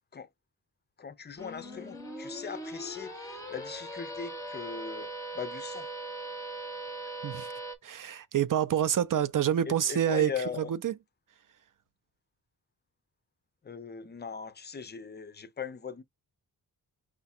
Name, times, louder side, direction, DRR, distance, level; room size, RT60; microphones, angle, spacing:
voice 1, 1.0-5.9 9.7-10.7 13.6-16.0, left 6 dB, 25° left, 0.4 m, -39 dB
sound 1, 1.4-7.8, right 1 dB, 10° left, 0.8 m, -40 dB
voice 2, 7.8-10.3 10.7-10.9, right 10 dB, 55° right, 0.5 m, -27 dB
4.9 x 2.3 x 4.2 m
wide cardioid pair, 175°, 39 cm